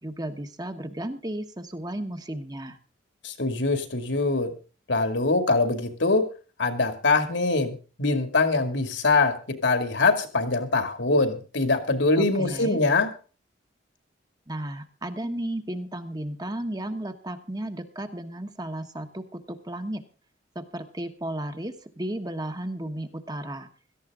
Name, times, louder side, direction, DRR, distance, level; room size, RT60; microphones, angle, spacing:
voice 1, 0.0-2.8 12.2-12.8 14.5-20.0 20.5-23.7, right 1 dB, 20° right, 7 dB, 1.2 m, -34 dB
voice 2, 3.2-4.5 4.9-6.3 6.6-13.1, left 3 dB, 70° left, 8 dB, 2.5 m, -23 dB
17.0 x 14.0 x 3.8 m, 0.36 s
head